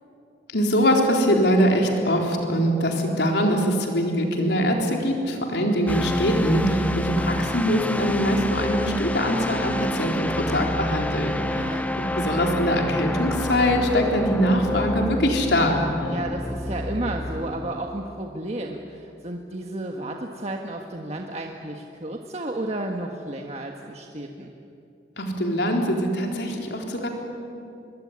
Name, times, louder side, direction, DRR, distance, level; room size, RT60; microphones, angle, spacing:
voice 1, 0.5-16.1 25.2-27.1, equal, 80° left, 1 dB, 4.0 m, -23 dB
sound 1, 5.9-17.9, left 1 dB, 10° left, 0.8 m, -29 dB
voice 2, 11.4-11.9 16.1-24.5, right 1 dB, 40° right, 2 dB, 1.6 m, -32 dB
25.0 x 22.0 x 9.9 m, 2.6 s
head